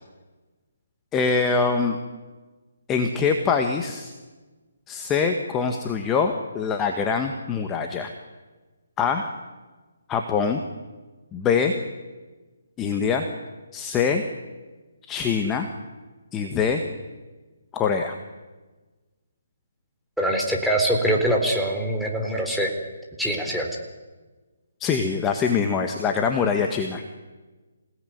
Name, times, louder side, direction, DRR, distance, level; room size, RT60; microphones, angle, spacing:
voice 1, 1.1-2.0 2.9-4.1 4.9-8.1 9.0-9.3 10.1-10.6 11.3-11.7 12.8-13.3 13.7-14.2 15.1-15.7 16.3-16.8 17.7-18.2 24.8-27.0, left 5 dB, 15° left, 4 dB, 1.9 m, -23 dB
voice 2, 20.2-22.7 23.2-23.7, right 1 dB, ahead, -1 dB, 4.1 m, -23 dB
28.0 x 18.0 x 9.7 m, 1.3 s
figure-of-eight pair, 150°, 0 cm